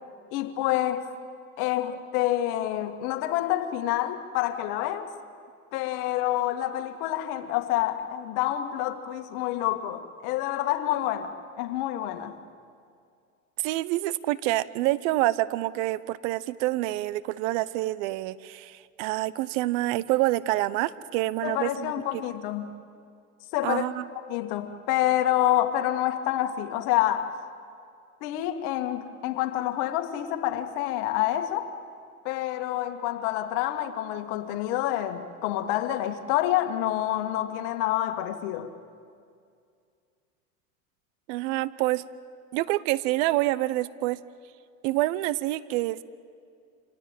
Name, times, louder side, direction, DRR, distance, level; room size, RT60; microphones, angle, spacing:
voice 1, 0.3-1.1 1.6-5.1 5.7-12.3 21.4-22.7 23.5-23.9 24.2-27.3 28.2-31.8 32.2-38.7, left 13 dB, 60° left, 1.9 m, -27 dB
voice 2, 13.6-22.2 23.6-24.1 41.3-42.0 42.5-44.2 44.8-46.0, right 17 dB, 60° right, 0.9 m, -27 dB
26.0 x 17.0 x 9.1 m
hypercardioid pair, 90°, 43 cm